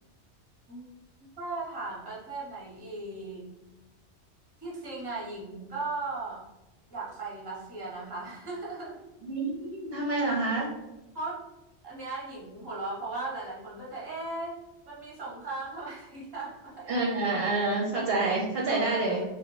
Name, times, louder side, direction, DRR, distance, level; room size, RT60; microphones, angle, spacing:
voice 1, 1.4-3.4 4.6-6.4 6.9-9.0 11.1-11.4 11.8-14.6 14.9-16.9 18.6-19.2, right 3 dB, 25° right, -4 dB, 0.7 m, -37 dB
voice 2, 9.2-10.7 16.9-19.2, right 2 dB, 65° right, -3 dB, 0.7 m, -28 dB
2.9 x 2.0 x 2.9 m, 1.0 s
omnidirectional pair, 1.2 m